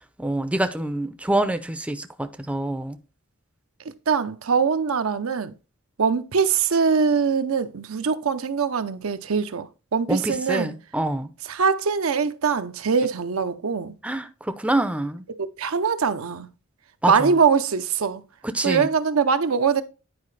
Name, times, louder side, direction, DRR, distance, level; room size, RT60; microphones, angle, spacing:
voice 1, 0.2-3.0 10.1-11.3 14.0-15.3 17.0-17.3 18.4-18.9, right 1 dB, 5° right, 0.5 m, -26 dB
voice 2, 4.1-5.5 6.0-10.7 11.5-13.9 15.4-16.5 17.1-18.2 18.6-19.8, right 5 dB, 80° right, 0.6 m, -22 dB
9.6 x 4.8 x 3.2 m
head